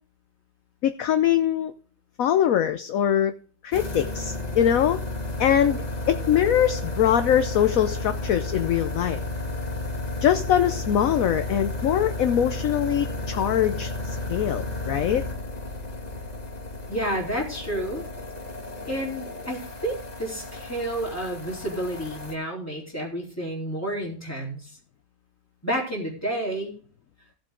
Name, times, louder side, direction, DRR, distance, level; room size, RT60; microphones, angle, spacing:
voice 1, 0.8-1.7 2.2-3.3 3.6-5.0 5.4-5.8 6.1-9.2 10.2-15.2, left 10 dB, 65° left, 9 dB, 0.9 m, -22 dB
sound 1, 3.7-22.3, left 2 dB, 25° left, 1.6 m, -33 dB
voice 2, 16.9-18.1 18.9-24.7 25.6-26.8, right 1 dB, 10° left, -3 dB, 3.7 m, -30 dB
15.5 x 7.6 x 3.8 m, 0.42 s
omnidirectional pair, 2.0 m